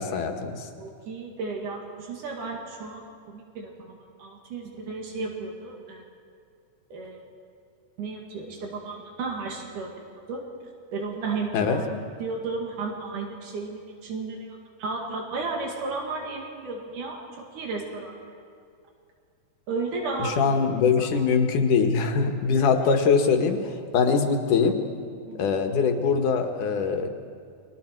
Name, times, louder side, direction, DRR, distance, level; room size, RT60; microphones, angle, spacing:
voice 1, 0.0-0.7 11.5-11.8 20.2-24.8 25.4-27.1, left 5 dB, 85° left, 5 dB, 3.0 m, -23 dB
voice 2, 0.8-3.1 3.3-6.0 6.9-7.2 8.0-9.9 10.3-10.4 10.9-11.9 12.2-18.1 19.7-20.6 20.9-21.2 22.5-22.7 23.1-23.2 25.3-25.5, right 3 dB, 90° right, 1 dB, 3.7 m, -33 dB
30.0 x 23.5 x 4.6 m, 2.3 s
omnidirectional pair, 3.5 m